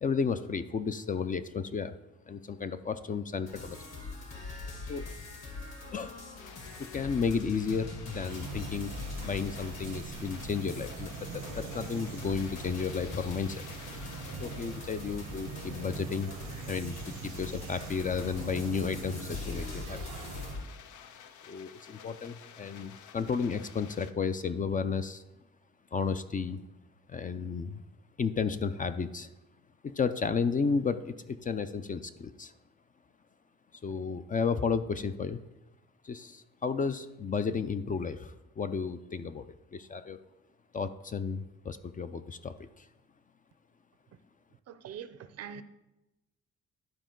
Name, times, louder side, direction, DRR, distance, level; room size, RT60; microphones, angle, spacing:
voice 1, 0.0-1.9 2.3-3.8 4.9-5.1 5.9-6.2 6.8-8.9 9.2-13.6 14.4-16.3 16.7-20.0 21.5-25.2 25.9-26.6 27.1-27.8 28.2-29.3 29.8-32.5 33.8-35.4 36.0-40.2 40.7-42.9, left 5 dB, 30° left, 0.4 m, -33 dB
sound 1, 3.4-20.6, left 3 dB, 60° left, 2.2 m, -43 dB
sound 2, 6.4-24.1, left 8 dB, 75° left, 0.6 m, -52 dB
sound 3, 8.3-20.5, right 7 dB, 85° right, 0.9 m, -43 dB
voice 2, 44.7-45.6, right 8 dB, 55° right, 0.6 m, -43 dB
11.5 x 4.4 x 3.8 m
cardioid pair, 90°, 30 cm